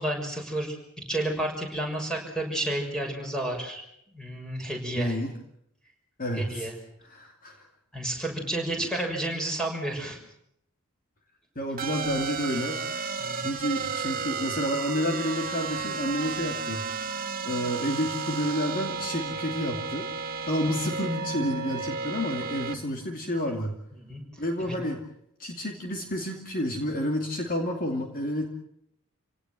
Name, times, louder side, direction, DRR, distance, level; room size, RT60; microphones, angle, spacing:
voice 1, 0.0-3.8 4.1-5.1 6.3-6.7 7.9-10.2 13.2-13.5 20.8-20.9 24.0-24.2 24.6-24.8, right 1 dB, 5° left, 1 dB, 6.5 m, -31 dB
voice 2, 4.9-5.3 6.2-6.7 7.0-7.7 11.6-12.8 13.3-16.9 17.4-23.8 24.4-25.0 25.4-28.5, equal, 40° left, 3 dB, 2.6 m, -30 dB
sound 1, 11.8-22.8, right 5 dB, 40° right, 1.7 m, -33 dB
28.0 x 18.0 x 7.6 m, 0.73 s
head